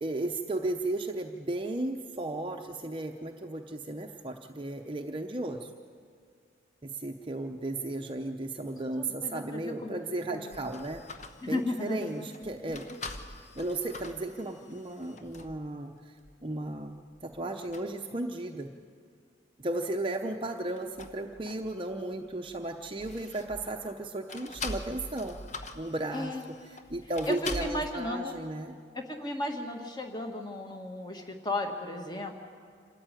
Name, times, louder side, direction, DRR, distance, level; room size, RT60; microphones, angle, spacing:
voice 1, 0.0-5.7 6.8-11.0 11.4-12.8 13.5-16.1 16.4-18.7 19.6-25.4 25.7-26.3 26.9-28.8, right 2 dB, 25° right, 3 dB, 0.8 m, -35 dB
voice 2, 9.0-10.0 10.3-10.7 11.4-12.5 26.1-26.4 27.3-28.3 28.9-32.3, left 1 dB, 20° left, 4 dB, 1.7 m, -35 dB
sound 1, 10.5-15.6 16.2-16.3 17.0-17.4 17.7-17.9 20.5-21.9 22.2-23.8 24.3-27.9, left 2 dB, 40° left, 1.1 m, -43 dB
26.5 x 14.0 x 9.1 m, 2.1 s
head